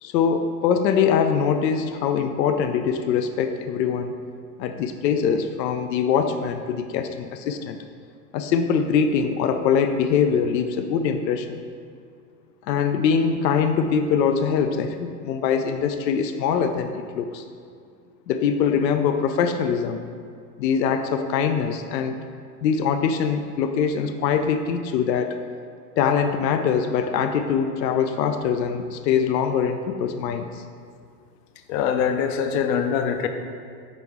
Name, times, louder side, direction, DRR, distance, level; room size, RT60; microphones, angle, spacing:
voice 1, 0.0-4.1 4.6-7.8 8.3-11.6 12.7-17.4 18.3-20.0 20.6-22.2 22.6-25.4 26.0-30.6, left 7 dB, 85° left, 8 dB, 0.5 m, -23 dB
voice 2, 31.7-33.3, left 7 dB, 35° left, 7 dB, 0.4 m, -23 dB
6.0 x 4.6 x 3.5 m, 2.2 s
hypercardioid pair, 100°, 50 cm